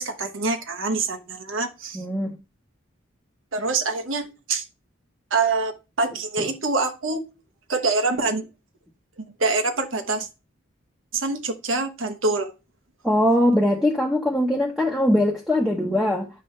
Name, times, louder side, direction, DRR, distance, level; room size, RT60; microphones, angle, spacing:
voice 1, 0.0-2.0 3.5-4.6 5.3-7.2 7.7-8.5 9.4-10.3 11.1-12.5, right 3 dB, 80° right, 1.2 m, -25 dB
voice 2, 1.9-2.4 13.0-16.3, left 1 dB, ahead, 1.1 m, -21 dB
10.0 x 7.1 x 3.3 m
head